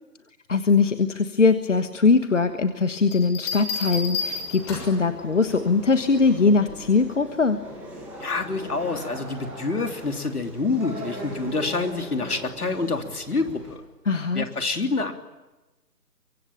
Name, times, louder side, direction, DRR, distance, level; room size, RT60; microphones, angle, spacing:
voice 1, 0.5-7.6 14.0-14.4, left 4 dB, 50° left, 9 dB, 1.5 m, -21 dB
Bell, 3.1-5.1 6.7-7.0, left 4 dB, 15° left, 6.6 m, -31 dB
sound 1, 4.2-13.7, right 1 dB, 5° right, 5.2 m, -40 dB
voice 2, 8.2-13.8 14.3-15.1, left 3 dB, 65° left, 6 dB, 3.4 m, -27 dB
24.5 x 24.0 x 9.1 m, 1.1 s
figure-of-eight pair, 155°, 48 cm